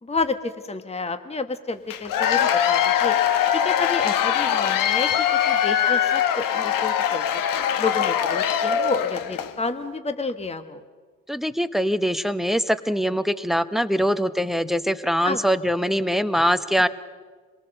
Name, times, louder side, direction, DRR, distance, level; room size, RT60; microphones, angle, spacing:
voice 1, 0.0-3.2 3.6-5.1 5.5-7.4 7.8-10.8 15.2-15.4, left 3 dB, 15° left, 9 dB, 1.4 m, -30 dB
Cheering / Applause / Crowd, 1.9-9.5, left 9 dB, 60° left, 1.2 m, -22 dB
voice 2, 11.3-16.9, equal, ahead, 13 dB, 0.9 m, -23 dB
26.0 x 19.0 x 6.7 m, 1.5 s
supercardioid pair, 70°, 37 cm